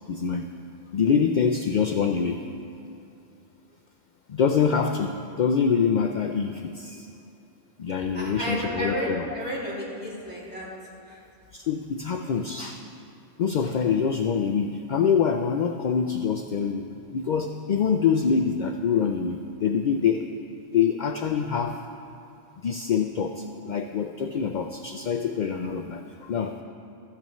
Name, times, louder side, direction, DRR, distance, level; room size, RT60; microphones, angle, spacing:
voice 1, 0.1-0.5 0.9-2.4 4.3-7.1 7.8-9.3 11.5-12.8 13.4-20.3 20.7-21.8 22.6-26.5, left 6 dB, 60° left, 5 dB, 0.5 m, -25 dB
voice 2, 8.1-10.7, equal, 10° right, -8 dB, 2.9 m, -32 dB
15.5 x 13.5 x 3.1 m, 2.8 s
omnidirectional pair, 1.3 m